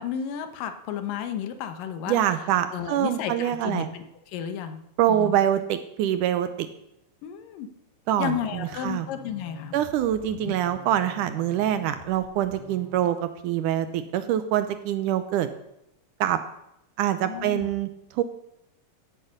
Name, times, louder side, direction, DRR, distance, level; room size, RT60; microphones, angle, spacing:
voice 1, 0.0-2.2 2.7-4.8 5.1-5.4 7.2-7.7 8.2-9.7 10.4-10.5 17.2-17.7, left 8 dB, 75° left, 9 dB, 2.6 m, -32 dB
voice 2, 2.1-3.9 5.0-6.7 8.1-9.1 9.7-15.5 16.2-16.4 17.0-18.2, right 11 dB, 75° right, 11 dB, 2.0 m, -25 dB
sound 1, 8.2-13.1, left 3 dB, 55° left, 3.7 m, -47 dB
16.0 x 8.2 x 6.5 m, 0.83 s
omnidirectional pair, 4.0 m